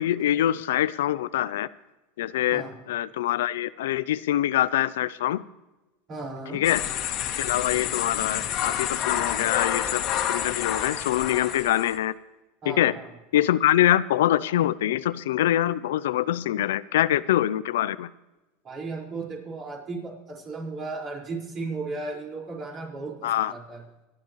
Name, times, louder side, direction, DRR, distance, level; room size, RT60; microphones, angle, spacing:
voice 1, 0.0-1.7 2.2-5.4 6.5-6.8 7.4-10.0 10.3-12.1 12.7-12.9 13.3-18.1 23.2-23.5, left 13 dB, 85° left, 16 dB, 0.5 m, -24 dB
voice 2, 6.1-6.6 12.6-13.1 18.6-23.8, right 3 dB, 35° right, -2 dB, 5.0 m, -35 dB
sound 1, 6.6-11.9, left 10 dB, 50° left, 2.0 m, -29 dB
24.5 x 11.0 x 3.2 m, 1.0 s
supercardioid pair, 125°, 0 cm